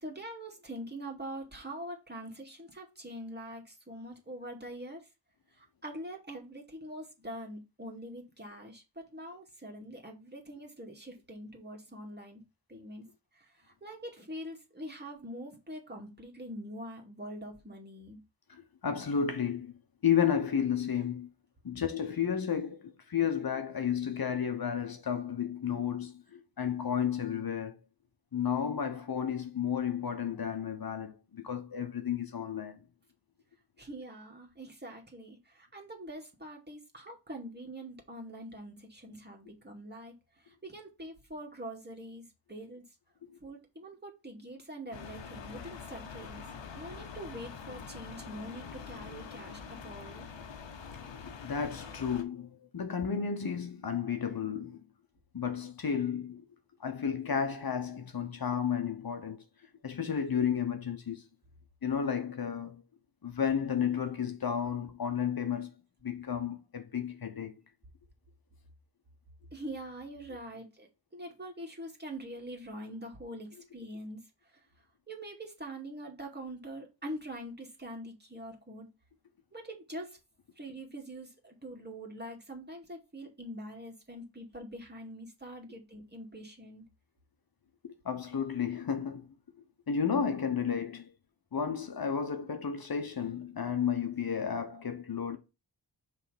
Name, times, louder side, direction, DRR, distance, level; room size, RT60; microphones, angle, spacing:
voice 1, 0.0-5.1 5.5-12.4 12.7-13.1 13.3-18.2 33.8-42.8 43.4-46.4 46.8-50.3 69.5-70.9 71.1-74.2 75.1-78.9 79.5-80.2 80.6-86.8, right 1 dB, 25° right, 2.3 m, -44 dB
voice 2, 18.5-19.7 20.0-21.3 21.6-27.8 28.3-32.8 43.2-43.3 51.0-54.8 55.3-56.4 56.8-59.4 59.8-61.2 61.8-62.8 63.2-65.7 66.0-67.5 87.8-89.3 89.9-91.1 91.5-95.4, left 7 dB, 55° left, 1.1 m, -32 dB
sound 1, 44.9-52.2, left 6 dB, 85° left, 0.9 m, -45 dB
5.6 x 3.6 x 5.0 m
cardioid pair, 50°, 43 cm